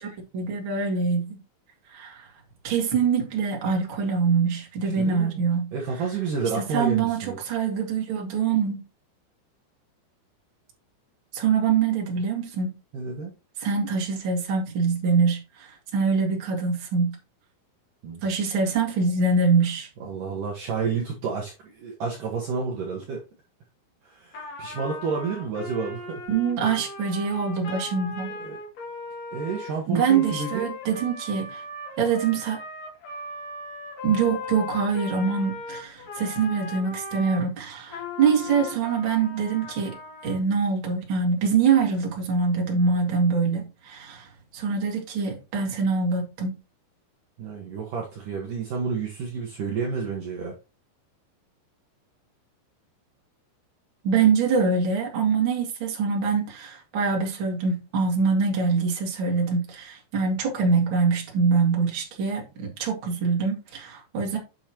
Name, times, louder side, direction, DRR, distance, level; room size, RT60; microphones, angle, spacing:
voice 1, 0.0-1.4 1.9-2.3 2.6-5.7 6.6-8.8 11.3-12.7 13.6-17.1 18.2-19.9 26.3-28.3 29.9-31.6 32.0-32.6 34.0-40.0 40.2-46.6 54.0-64.4, right 5 dB, 45° right, 1.7 m, -24 dB
voice 2, 4.8-5.4 5.7-7.4 12.9-13.3 18.0-18.5 20.0-23.2 24.0-26.3 28.4-28.6 29.3-30.7 47.4-50.5, right 5 dB, 80° right, 1.9 m, -30 dB
Trumpet, 24.3-37.4 37.9-40.4, left 3 dB, 45° left, 3.5 m, -38 dB
8.1 x 7.1 x 3.0 m
omnidirectional pair, 5.9 m